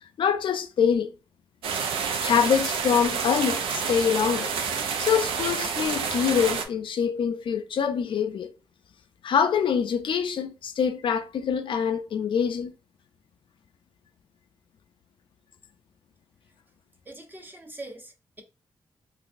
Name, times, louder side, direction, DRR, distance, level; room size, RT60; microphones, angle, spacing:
voice 1, 0.2-1.1 2.2-4.5 5.0-8.5 9.2-12.7, left 7 dB, 70° left, 0.4 m, -25 dB
sound 1, 1.6-6.6, right 6 dB, 85° right, 0.4 m, -29 dB
voice 2, 17.1-18.4, right 2 dB, 20° right, 0.9 m, -43 dB
3.9 x 2.3 x 2.4 m
cardioid pair, 60°, 9 cm